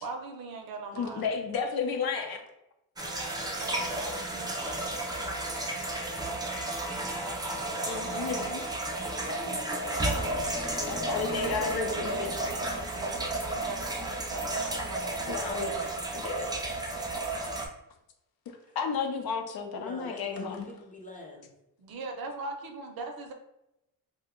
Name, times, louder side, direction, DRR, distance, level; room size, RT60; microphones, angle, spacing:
voice 1, 0.0-1.3 3.4-4.8 11.3-16.0 21.8-23.3, right 3 dB, 60° right, 4 dB, 0.6 m, -41 dB
voice 2, 1.0-2.4 7.8-8.6 10.9-12.6 15.3-15.7 16.1-16.7 18.7-20.7, left 5 dB, 60° left, 4 dB, 0.6 m, -33 dB
sound 1, 3.0-17.7, right 2 dB, 10° right, 0.3 m, -32 dB
voice 3, 9.2-10.4 17.5-17.6 18.6-18.8 19.7-21.5, left 2 dB, 20° left, 0 dB, 0.7 m, -44 dB
2.7 x 2.1 x 3.6 m, 0.86 s
cardioid pair, 115°, 41 cm